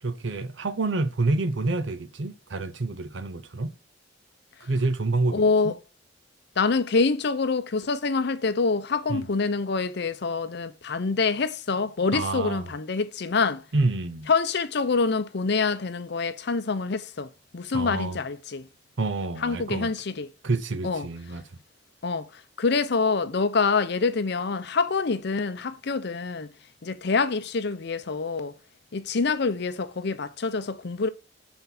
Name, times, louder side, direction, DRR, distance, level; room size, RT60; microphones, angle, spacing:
voice 1, 0.0-3.7 4.6-5.7 9.1-9.2 12.1-12.7 13.7-14.3 17.7-18.2 19.0-19.9 20.4-21.4, right 3 dB, 70° right, 0.8 m, -28 dB
voice 2, 5.3-5.7 6.6-13.6 14.3-18.7 19.4-20.3 20.8-21.1 22.0-22.3 22.6-26.5 26.8-28.5 28.9-31.1, left 4 dB, 60° left, 0.6 m, -26 dB
5.7 x 4.5 x 5.9 m
head